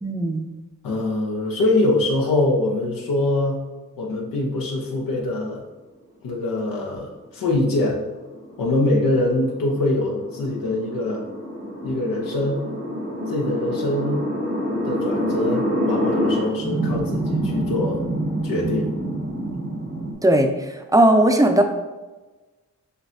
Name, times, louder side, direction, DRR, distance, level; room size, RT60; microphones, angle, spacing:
voice 1, 0.0-0.4 20.2-20.5 20.9-21.6, right 1 dB, 10° right, 5 dB, 0.5 m, -16 dB
voice 2, 0.8-3.6 4.0-5.6 6.2-8.0 8.6-11.2 11.8-12.6 13.3-14.2 14.8-18.0 18.4-18.9, left 2 dB, 85° left, -1 dB, 0.9 m, -23 dB
sound 1, 7.8-20.1, equal, 85° right, 1.4 m, -27 dB
6.6 x 2.2 x 2.7 m, 1.2 s
cardioid pair, 50°, 33 cm